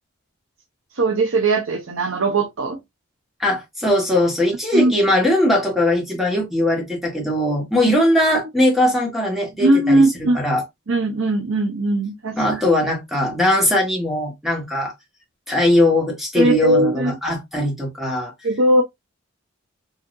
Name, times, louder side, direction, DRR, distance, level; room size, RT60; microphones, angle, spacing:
voice 1, 0.9-2.8 4.7-4.9 9.6-10.4 10.9-12.4 16.3-17.2 18.4-18.8, right 1 dB, 75° right, 0.8 m, -19 dB
voice 2, 3.4-10.6 12.3-14.9 15.5-18.3, left 1 dB, ahead, 1.5 m, -20 dB
4.9 x 2.9 x 2.6 m
head